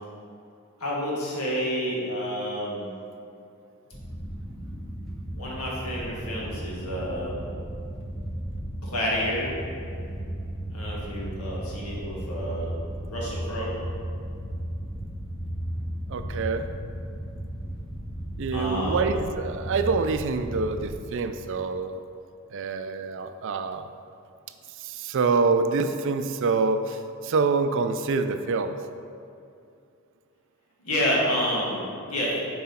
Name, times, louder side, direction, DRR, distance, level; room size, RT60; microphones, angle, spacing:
voice 1, 0.8-2.9 5.3-7.5 8.8-9.5 10.7-12.7 13.1-13.7 18.5-19.1 30.8-32.4, equal, 90° left, -4 dB, 1.8 m, -29 dB
sound 1, 3.9-21.0, equal, ahead, 0.9 m, -35 dB
voice 2, 16.1-16.7 18.4-22.0 22.5-23.9 24.8-28.8, right 4 dB, 60° right, 8 dB, 0.4 m, -26 dB
7.7 x 4.7 x 4.3 m, 2.5 s
head